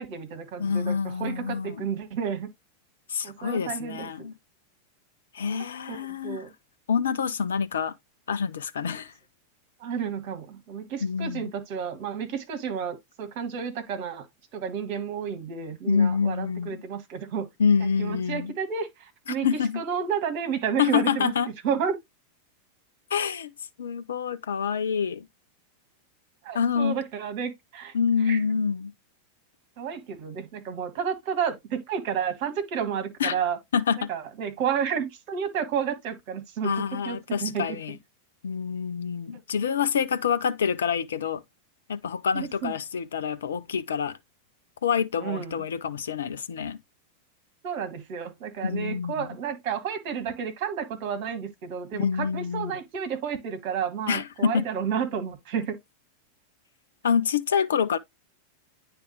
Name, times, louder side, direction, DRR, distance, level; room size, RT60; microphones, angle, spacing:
voice 1, 0.0-2.5 3.2-4.1 5.9-6.5 9.8-14.3 14.5-17.5 17.8-19.5 19.7-21.3 21.6-22.0 26.4-27.9 28.2-28.4 29.8-33.6 34.1-38.0 42.3-42.7 45.2-45.5 47.6-55.8, right 7 dB, 45° right, 1.6 m, -31 dB
voice 2, 0.6-1.9 3.1-4.3 5.3-6.5 6.9-7.9 8.3-9.1 11.0-11.5 15.9-16.8 17.6-18.5 19.4-19.8 20.8-21.5 23.1-23.5 23.8-25.3 26.5-27.0 27.9-28.9 33.2-33.3 33.7-34.1 36.6-38.0 38.4-41.4 41.9-44.2 44.8-46.8 48.6-49.3 51.9-52.7 54.1-54.7 57.0-58.0, left 6 dB, 65° left, 0.5 m, -26 dB
9.7 x 3.4 x 3.1 m
figure-of-eight pair, 90°, 0 cm